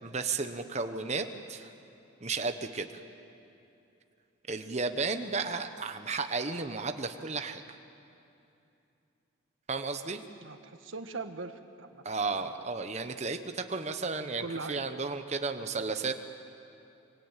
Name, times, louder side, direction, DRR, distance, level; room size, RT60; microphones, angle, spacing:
voice 1, 0.0-1.7 2.2-2.9 4.5-7.6 9.7-10.2 12.0-16.2, right 4 dB, 30° right, 7 dB, 1.1 m, -33 dB
voice 2, 10.4-12.0 12.4-12.5 14.2-14.9, right 3 dB, 70° right, 7 dB, 1.5 m, -40 dB
25.5 x 23.5 x 9.0 m, 2.7 s
head